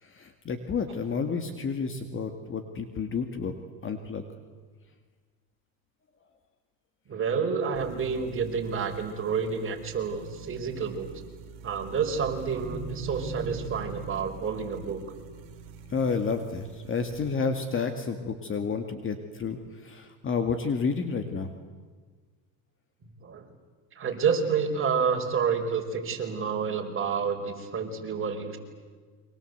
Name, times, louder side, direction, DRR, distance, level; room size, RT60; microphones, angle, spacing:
voice 1, 0.0-3.5 3.8-4.2 15.9-21.5, left 5 dB, 30° left, 7 dB, 2.2 m, -30 dB
voice 2, 7.1-11.1 11.6-15.0 23.2-23.5 24.0-28.6, right 6 dB, 30° right, 2 dB, 5.2 m, -29 dB
sound 1, 7.7-17.3, right 5 dB, 55° right, 4.1 m, -42 dB
29.5 x 24.5 x 8.2 m, 1.5 s
supercardioid pair, 110°, 40 cm